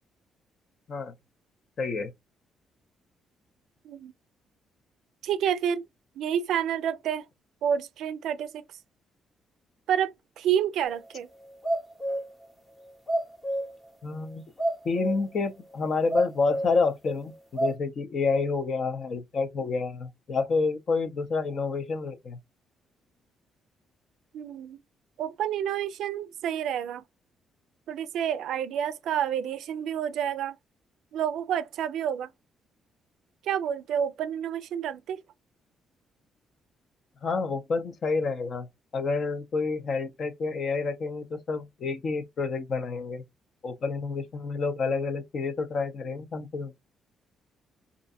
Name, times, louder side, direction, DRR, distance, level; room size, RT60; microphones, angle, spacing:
voice 1, 1.8-2.1 14.0-14.4 14.8-22.4 37.2-38.7 38.9-43.2 43.6-46.7, left 4 dB, 55° left, 0.6 m, -29 dB
voice 2, 5.2-5.8 6.2-7.3 7.6-8.6 9.9-11.3 24.3-24.8 25.2-27.0 27.9-30.6 31.1-32.3 33.4-35.2, right 9 dB, 80° right, 0.3 m, -29 dB
sound 1, 10.9-11.0 11.4-12.3 12.8-13.8 14.2-14.3 14.6-15.3 15.7-15.8 16.1-16.8 17.3-17.7, right 1 dB, 15° left, 0.8 m, -29 dB
2.5 x 2.2 x 2.6 m
cardioid pair, 90°, 0 cm